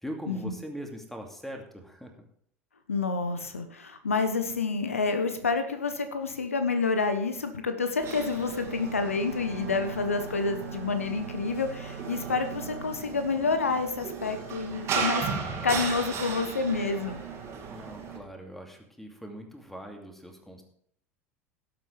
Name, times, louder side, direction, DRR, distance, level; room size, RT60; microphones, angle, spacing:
voice 1, 0.0-2.1 17.7-20.6, equal, 5° left, 3 dB, 2.4 m, -41 dB
voice 2, 2.9-17.2, left 4 dB, 80° left, 8 dB, 1.0 m, -29 dB
sound 1, 8.0-18.2, right 6 dB, 40° right, 2.5 m, -36 dB
Wind instrument woodwind instrument, 8.5-13.0, right 3 dB, 85° right, 2.0 m, -43 dB
17.5 x 8.1 x 3.4 m, 0.66 s
figure-of-eight pair, 75°, 7 cm